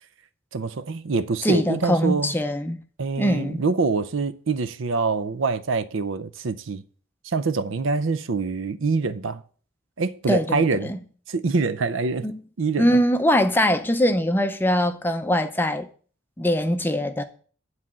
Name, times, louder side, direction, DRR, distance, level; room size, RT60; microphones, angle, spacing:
voice 1, 0.5-2.3 3.0-6.8 7.2-9.4 10.0-10.9 11.3-12.3 12.6-13.0, right 4 dB, 70° right, 0.6 m, -25 dB
voice 2, 1.4-2.8 3.2-3.6 10.3-11.0 12.2-12.4 12.8-15.9 16.4-17.2, equal, 10° left, 0.5 m, -22 dB
9.8 x 4.1 x 7.4 m
head